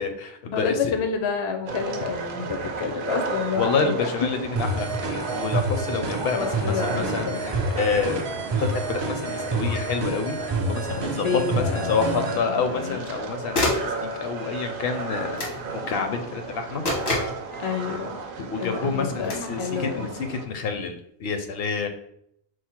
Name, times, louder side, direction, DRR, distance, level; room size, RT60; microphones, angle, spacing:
voice 1, 0.0-1.0 3.6-8.3 8.6-13.5 14.0-15.4 15.7-16.8 18.5-21.9, left 5 dB, 75° left, 6 dB, 0.8 m, -28 dB
voice 2, 0.5-4.1 6.3-7.5 10.8-13.0 17.6-18.1 18.6-20.2, left 6 dB, 45° left, 6 dB, 0.4 m, -29 dB
sound 1, 1.7-20.5, right 4 dB, 65° right, 0.7 m, -34 dB
sound 2, 4.6-12.4, right 2 dB, 45° right, 0.3 m, -28 dB
sound 3, 10.3-10.4 12.8-13.2 13.5-14.0 15.4-15.6 16.8-17.4 19.2-19.5, left 2 dB, 90° left, 1.4 m, -26 dB
4.7 x 2.0 x 4.3 m, 0.73 s
omnidirectional pair, 1.0 m